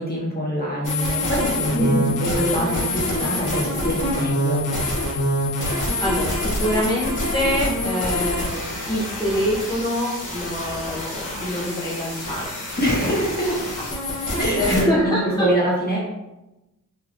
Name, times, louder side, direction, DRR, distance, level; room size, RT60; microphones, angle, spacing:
voice 1, 0.0-4.6 12.8-13.6 14.4-16.0, equal, 30° left, -5 dB, 1.1 m, -24 dB
sound 1, 0.8-14.8, left 1 dB, 60° left, 1.0 m, -26 dB
voice 2, 1.7-2.1 5.7-12.5 12.9-13.1 14.1-15.5, equal, 10° left, -7 dB, 0.6 m, -25 dB
sound 2, 2.6-2.9 3.4-3.6 4.1-4.4 4.8-5.1 5.6-5.8 6.3-6.6 7.0-7.3 7.8-8.0 8.5-8.8 9.2-9.5 9.9-10.2, right 2 dB, 70° right, 0.6 m, -39 dB
3.3 x 2.8 x 2.4 m, 0.98 s
wide cardioid pair, 85°, 34 cm